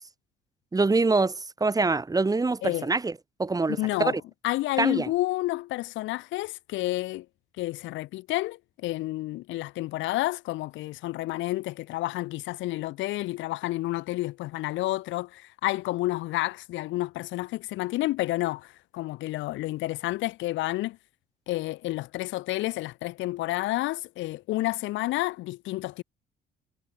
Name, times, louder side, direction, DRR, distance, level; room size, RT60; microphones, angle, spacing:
voice 1, 0.7-3.1 3.4-4.1 4.8-5.1, right 3 dB, 20° right, 3.5 m, -25 dB
voice 2, 3.7-4.2 4.4-7.3 7.6-21.0 21.5-26.0, left 18 dB, 85° left, 5.0 m, -30 dB
cardioid pair, 110°, 19 cm